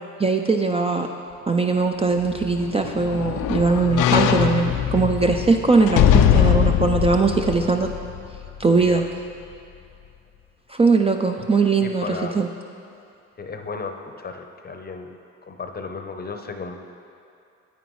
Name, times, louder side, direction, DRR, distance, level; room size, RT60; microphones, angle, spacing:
voice 1, 0.2-1.1 1.5-7.9 8.6-9.0 10.7-12.0 12.3-12.5, right 4 dB, 20° right, 3 dB, 0.4 m, -20 dB
sound 1, 2.2-8.6 9.0-9.1, left 9 dB, 85° left, 0.5 m, -21 dB
voice 2, 8.7-9.0 11.8-12.5 13.4-15.2 15.4-16.8, left 4 dB, 30° left, 5 dB, 0.7 m, -34 dB
9.2 x 8.4 x 3.1 m, 2.6 s
cardioid pair, 90°, 30 cm